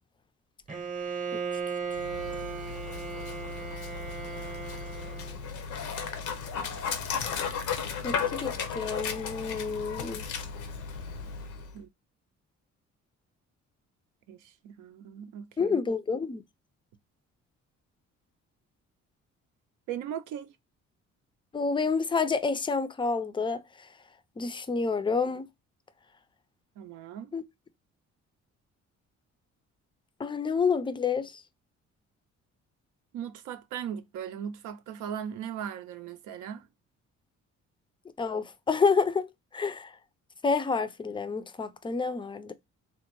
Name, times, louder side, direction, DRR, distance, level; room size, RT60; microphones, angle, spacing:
Bowed string instrument, 0.7-5.4, right 5 dB, 25° right, 0.8 m, -36 dB
Dog, 1.9-11.8, left 6 dB, 80° left, 0.6 m, -35 dB
voice 1, 8.0-10.2 15.6-16.4 21.5-23.6 24.4-25.5 27.3-27.4 30.2-31.3 38.2-39.3 39.5-39.9 40.4-42.5, left 5 dB, 15° left, 0.4 m, -28 dB
voice 2, 14.3-15.7 19.9-20.5 26.8-27.3 33.1-36.7, right 9 dB, 80° right, 0.5 m, -38 dB
3.6 x 2.1 x 2.9 m
cardioid pair, 90°, 30 cm